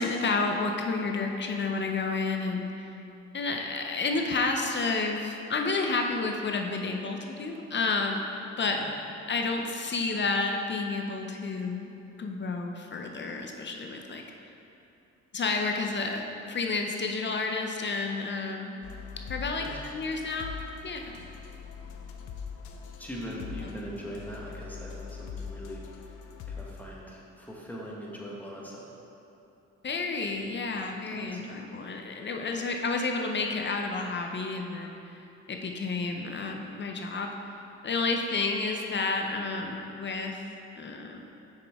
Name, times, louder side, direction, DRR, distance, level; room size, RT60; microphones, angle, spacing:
voice 1, 0.0-2.9 3.3-8.2 8.6-8.8 9.3-11.9 12.2-14.2 15.3-18.8 19.3-20.5 20.8-21.2 29.8-35.0 35.5-37.3 37.8-40.4 40.8-41.3, left 3 dB, 40° left, 3 dB, 0.6 m, -30 dB
sound 1, 18.8-26.8, left 6 dB, 80° left, 0.6 m, -42 dB
voice 2, 23.0-26.2 26.5-28.8 31.1-31.5, equal, 5° left, -4 dB, 1.4 m, -41 dB
6.8 x 6.0 x 3.5 m, 2.8 s
cardioid pair, 90°, 30 cm